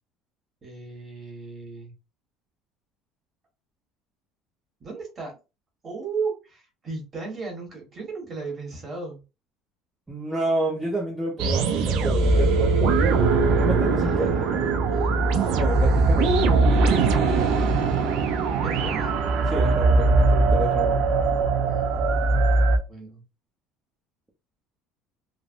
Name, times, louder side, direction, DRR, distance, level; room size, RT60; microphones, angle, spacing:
voice 1, 0.6-1.9 4.8-5.4 5.8-9.2 14.0-15.2 18.6-19.2 21.7-22.4 22.9-23.2, right 4 dB, 25° right, 1.3 m, -35 dB
voice 2, 10.1-13.0 13.5-14.7 15.5-16.7 19.5-21.1, right 1 dB, 10° right, 0.5 m, -30 dB
sound 1, 11.4-22.8, right 3 dB, 60° right, 0.4 m, -21 dB
3.2 x 2.0 x 2.5 m
cardioid pair, 155°, 0 cm